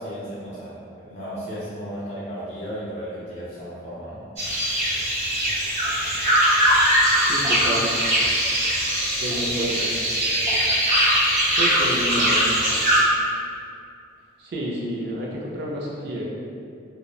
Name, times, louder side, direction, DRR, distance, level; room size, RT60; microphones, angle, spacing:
voice 1, 0.0-4.2, equal, 35° left, -10 dB, 0.4 m, -34 dB
sound 1, 4.4-13.0, equal, 20° right, 1.1 m, -21 dB
voice 2, 7.3-7.9 9.2-10.0 11.6-12.5 14.4-16.2, equal, 55° right, -4 dB, 0.4 m, -29 dB
2.8 x 2.0 x 2.3 m, 2.4 s
head